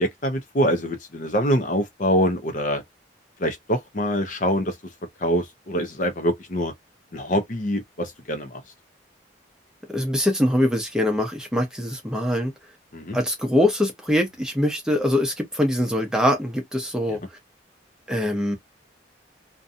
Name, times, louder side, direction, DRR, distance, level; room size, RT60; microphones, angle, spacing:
voice 1, 0.0-2.8 3.4-4.8 5.2-6.7 7.1-8.6 12.9-13.2 17.1-17.2, equal, 45° left, 0.5 m, -24 dB
voice 2, 9.9-12.5 13.1-17.2 18.1-18.6, left 1 dB, 5° right, 0.7 m, -23 dB
2.6 x 2.2 x 2.5 m
head